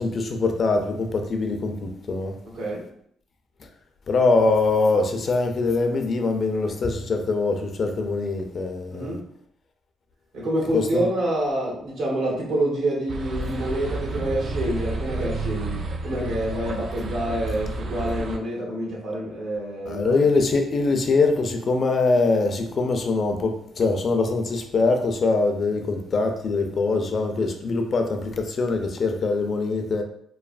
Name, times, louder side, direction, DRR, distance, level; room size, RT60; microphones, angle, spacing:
voice 1, 0.0-2.3 4.1-9.2 10.7-11.1 19.9-30.0, left 3 dB, 50° left, 4 dB, 0.4 m, -23 dB
voice 2, 8.9-9.2 10.3-20.2, right 1 dB, 75° right, -4 dB, 1.1 m, -27 dB
sound 1, 13.1-18.4, right 2 dB, 55° right, 0.4 m, -30 dB
3.1 x 2.1 x 2.4 m, 0.68 s
cardioid pair, 90°, 0 cm